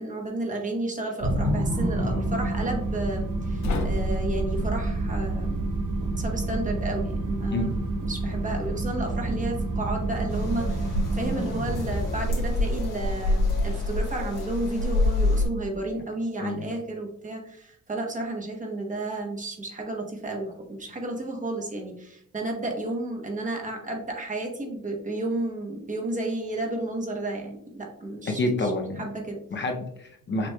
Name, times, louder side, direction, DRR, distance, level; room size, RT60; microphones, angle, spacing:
voice 1, 0.0-5.7 6.0-7.7 8.0-28.7 29.0-29.4, right 2 dB, 25° right, 1 dB, 0.9 m, -32 dB
sound 1, 1.2-15.7, right 2 dB, 80° right, 1.3 m, -29 dB
sound 2, 3.6-6.7, equal, 65° left, 1.0 m, -32 dB
sound 3, 10.3-15.5, left 2 dB, 85° left, 1.6 m, -26 dB
voice 2, 28.3-29.0 29.5-30.5, left 1 dB, 35° left, 3 dB, 0.6 m, -28 dB
5.9 x 3.0 x 2.2 m, 0.74 s
cardioid pair, 135°, 31 cm